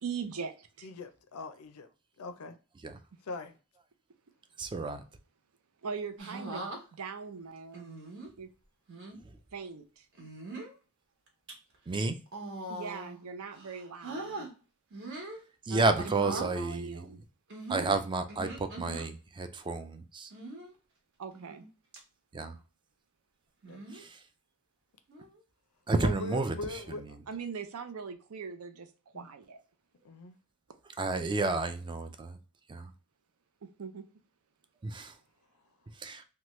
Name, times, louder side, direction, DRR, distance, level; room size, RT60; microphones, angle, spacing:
voice 1, 0.0-0.9 5.8-6.7 7.0-7.9 8.4-8.5 9.5-10.1 12.7-14.5 15.7-15.9 16.3-17.2 21.2-21.6 27.3-29.6 33.6-34.1, right 5 dB, 80° right, 0.5 m, -40 dB
voice 2, 0.8-1.9 2.2-2.6 3.2-3.6 23.7-24.1 26.0-27.2 29.1-29.3 30.0-30.3, left 3 dB, 85° left, 0.5 m, -41 dB
voice 3, 4.6-5.0 11.9-12.2 15.6-17.1 17.7-20.3 22.3-22.6 23.9-24.2 25.9-26.5 31.0-32.4 32.7-32.9 34.8-35.1 36.0-36.2, right 3 dB, 20° right, 0.3 m, -31 dB
sound 1, 6.2-6.8 7.7-8.3 8.9-9.2 10.1-10.7 11.3-11.5 12.3-13.2 13.5-14.5 14.9-15.4 16.0-16.5 17.5-19.1 20.3-20.7 21.3-21.7 21.9-22.0 23.6-24.0 25.1-25.4, right 2 dB, 60° right, 1.0 m, -41 dB
2.9 x 2.2 x 3.0 m
head